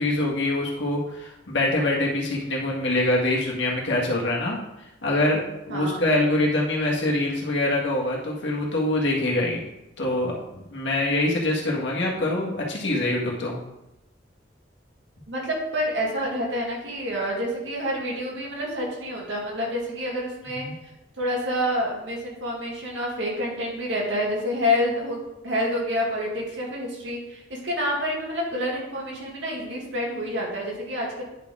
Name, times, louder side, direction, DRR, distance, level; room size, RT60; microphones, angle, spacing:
voice 1, 0.0-4.6 5.0-9.6 10.0-13.5 20.5-20.7, left 1 dB, 80° left, -3 dB, 1.7 m, -24 dB
voice 2, 5.7-6.0 15.3-20.7 21.2-25.2 25.4-31.2, equal, 80° right, -3 dB, 2.2 m, -28 dB
10.0 x 4.2 x 3.7 m, 0.92 s
head